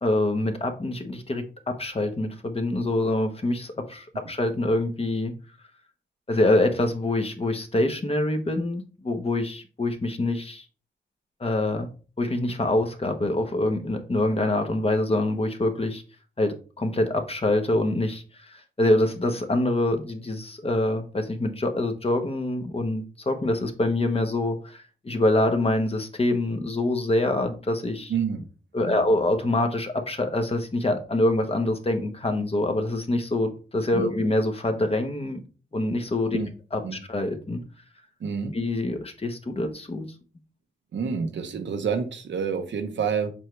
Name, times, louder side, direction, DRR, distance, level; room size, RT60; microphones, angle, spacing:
voice 1, 0.0-5.3 6.3-10.6 11.4-11.9 12.2-16.0 16.4-28.1 28.7-35.4 35.7-36.4 36.7-37.6 38.5-40.1, left 1 dB, 30° left, 1.2 m, -25 dB
voice 2, 28.1-28.4 28.8-29.0 34.0-34.1 36.3-36.5 36.8-37.0 38.2-38.5 40.9-43.3, right 6 dB, 85° right, 1.0 m, -28 dB
7.3 x 4.6 x 3.3 m
wide cardioid pair, 105°, 19 cm